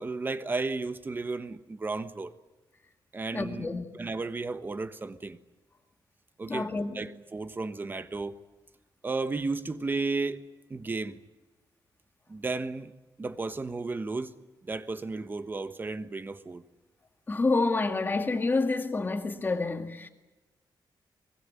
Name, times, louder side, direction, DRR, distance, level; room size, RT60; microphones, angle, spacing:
voice 1, 0.0-2.3 3.1-5.4 6.4-6.7 6.9-8.4 9.0-10.4 10.7-11.2 12.3-12.9 13.2-14.3 14.6-16.6, right 3 dB, 25° right, 1.3 m, -33 dB
voice 2, 3.3-3.8 6.5-7.0 17.3-20.1, left 3 dB, 25° left, 2.2 m, -28 dB
24.0 x 21.5 x 9.8 m
wide cardioid pair, 160°, 8 cm